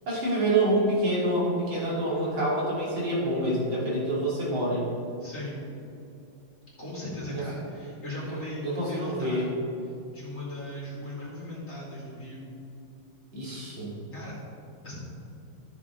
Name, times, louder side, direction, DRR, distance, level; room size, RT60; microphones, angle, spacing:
voice 1, 0.1-4.9 8.6-9.5 13.3-14.0, right 1 dB, 85° right, -7 dB, 3.4 m, -27 dB
voice 2, 5.2-5.6 6.8-9.5 10.1-12.4 14.1-14.4 14.8-14.9, left 1 dB, 40° left, -6 dB, 3.1 m, -37 dB
13.0 x 7.1 x 3.7 m, 2.7 s
omnidirectional pair, 2.1 m